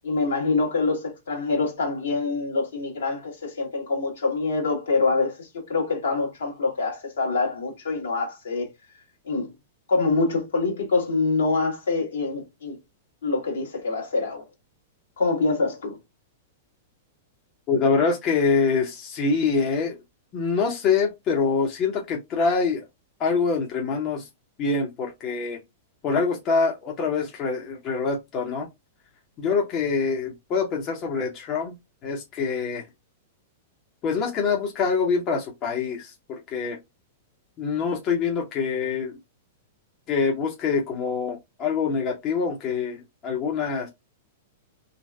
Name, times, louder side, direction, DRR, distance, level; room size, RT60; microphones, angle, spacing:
voice 1, 0.0-8.7 9.3-9.5 9.9-12.8 13.2-14.4 15.2-16.0, left 3 dB, 65° left, 1.2 m, -25 dB
voice 2, 17.7-20.0 20.3-22.8 23.2-24.3 24.6-25.6 26.0-28.7 29.4-31.7 32.0-32.9 34.0-36.8 37.6-39.2 40.1-43.9, left 5 dB, 35° left, 0.7 m, -25 dB
3.1 x 2.6 x 2.2 m
figure-of-eight pair, 100°, 0 cm